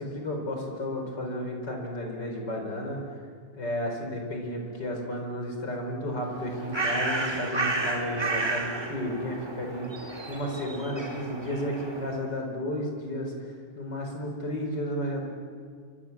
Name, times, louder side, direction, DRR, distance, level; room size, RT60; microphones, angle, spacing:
voice 1, 0.0-3.0 3.6-15.3, equal, 50° left, 2 dB, 5.2 m, -33 dB
Bird, 6.2-12.3, right 2 dB, 10° right, 2.1 m, -32 dB
28.0 x 24.5 x 7.4 m, 2.1 s
omnidirectional pair, 2.3 m